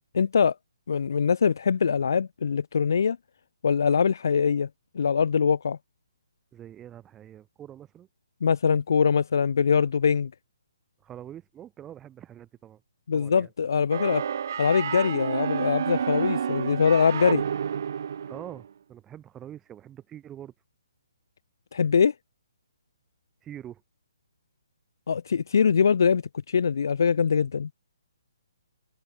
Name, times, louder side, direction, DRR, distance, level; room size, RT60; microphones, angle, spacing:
voice 1, 0.1-0.5 0.9-3.2 3.6-4.7 4.9-5.8 8.4-10.3 13.1-14.2 14.6-17.4 21.7-22.1 25.1-27.7, left 6 dB, 55° left, 1.4 m, -23 dB
voice 2, 6.5-8.1 11.0-12.8 13.1-13.5 18.3-20.5 23.4-23.8, right 11 dB, 10° right, 4.1 m, -44 dB
sound 1, 13.9-18.7, right 7 dB, 40° right, 0.5 m, -30 dB
hypercardioid pair, 175°, 2 cm